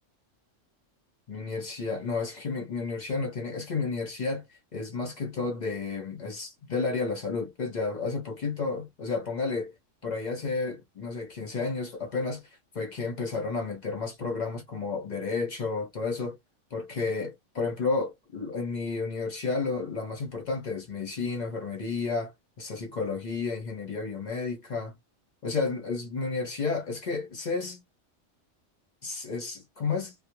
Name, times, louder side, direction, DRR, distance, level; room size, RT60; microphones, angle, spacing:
voice 1, 1.3-4.5 4.7-9.7 10.0-12.5 12.7-16.4 16.7-22.3 22.6-24.9 25.4-27.8 29.0-30.1, left 4 dB, 50° left, 0.6 m, -31 dB
2.3 x 2.0 x 2.8 m
omnidirectional pair, 1.3 m